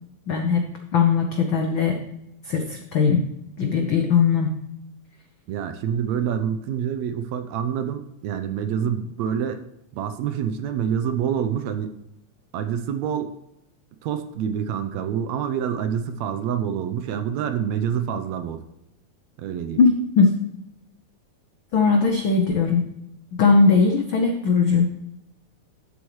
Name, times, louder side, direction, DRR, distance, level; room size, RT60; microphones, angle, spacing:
voice 1, 0.3-0.7 0.9-2.0 2.4-3.3 3.6-4.5 19.8-20.3 21.7-22.9 23.3-24.9, left 4 dB, 80° left, 3 dB, 1.1 m, -19 dB
voice 2, 5.5-9.6 9.9-11.9 12.5-13.4 14.0-18.6 19.4-19.8, right 8 dB, 75° right, 9 dB, 1.8 m, -27 dB
11.5 x 8.0 x 3.1 m, 0.86 s
omnidirectional pair, 3.4 m